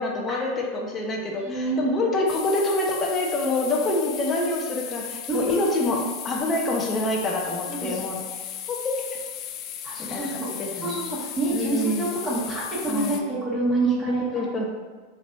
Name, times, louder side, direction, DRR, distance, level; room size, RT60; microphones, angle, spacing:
voice 1, 0.0-8.2 8.7-8.9 10.0-11.0 11.5-12.1 12.9-13.4 14.2-14.7, left 2 dB, 25° left, -1 dB, 0.7 m, -26 dB
voice 2, 1.4-1.9 5.3-6.0 7.7-8.0 9.8-10.5 10.8-14.2, right 2 dB, 20° right, -8 dB, 1.5 m, -27 dB
sound 1, 2.3-13.2, left 9 dB, 45° left, 0.3 m, -36 dB
4.0 x 3.3 x 2.6 m, 1.4 s
hypercardioid pair, 95°, 0 cm